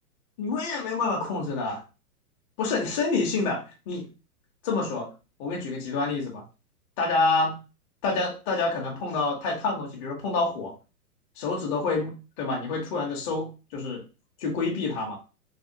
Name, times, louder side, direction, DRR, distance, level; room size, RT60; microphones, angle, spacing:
voice 1, 0.4-1.8 2.6-4.1 4.6-5.1 5.4-6.4 7.0-7.6 8.0-10.7 11.4-12.1 12.4-14.0 14.4-15.2, left 3 dB, 30° left, -1 dB, 0.9 m, -27 dB
3.3 x 2.2 x 2.6 m, 0.31 s
hypercardioid pair, 145°, 47 cm